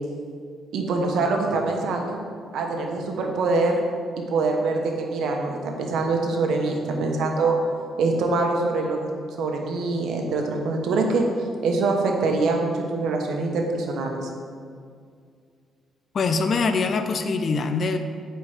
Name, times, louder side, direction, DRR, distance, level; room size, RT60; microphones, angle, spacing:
voice 1, 0.7-2.2 2.5-3.8 4.2-7.6 8.0-9.1 9.4-11.2 11.6-14.3, right 3 dB, 75° right, 2 dB, 1.1 m, -24 dB
voice 2, 16.1-18.0, left 4 dB, 50° left, 8 dB, 0.6 m, -23 dB
8.5 x 4.6 x 5.0 m, 2.2 s
cardioid pair, 90°, 0 cm